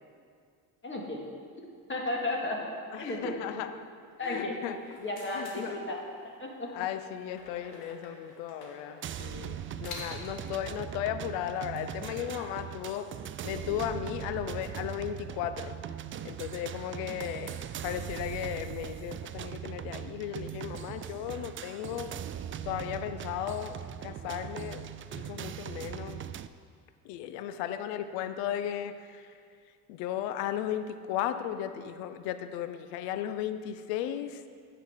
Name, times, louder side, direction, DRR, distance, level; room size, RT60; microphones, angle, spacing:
voice 1, 0.8-1.2 1.6-2.6 3.0-3.3 4.2-4.5 5.0-6.0 6.4-6.7, left 2 dB, 25° left, 0 dB, 2.1 m, -34 dB
voice 2, 2.9-3.7 4.2-5.0 5.3-5.7 6.7-13.1 13.4-15.7 16.2-22.1 22.6-26.2 27.0-29.3 29.9-34.5, left 10 dB, 75° left, 11 dB, 0.7 m, -35 dB
sound 1, 4.8-6.3 7.3-10.5, left 3 dB, 60° left, 2.0 m, -47 dB
sound 2, 9.0-26.5, right 10 dB, 30° right, 0.4 m, -40 dB
8.9 x 5.5 x 7.1 m, 2.2 s
hypercardioid pair, 65°, 42 cm